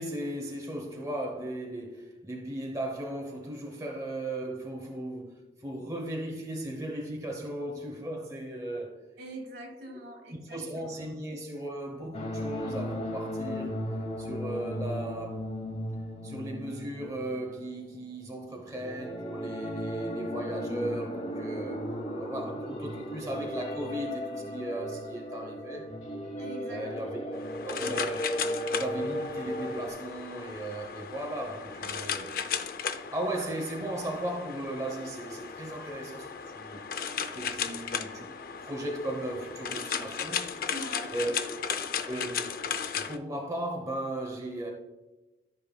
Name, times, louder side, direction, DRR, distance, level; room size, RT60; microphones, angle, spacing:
voice 1, 0.0-9.0 9.9-10.0 10.3-13.8 14.2-15.6 16.2-21.9 22.2-25.9 26.7-27.2 27.6-28.4 28.7-32.3 32.6-36.8 37.3-38.3 38.6-40.5 41.1-41.4 42.1-42.6 42.9-44.7, right 1 dB, 20° right, 0.8 m, -36 dB
voice 2, 9.2-11.1 26.4-27.3 40.7-41.2, right 1 dB, 70° right, 1.7 m, -43 dB
sound 1, 12.1-18.0 18.7-29.9, equal, 35° left, 0.9 m, -35 dB
sound 2, 27.3-43.2, left 7 dB, 50° left, 0.4 m, -36 dB
13.0 x 5.3 x 2.3 m
head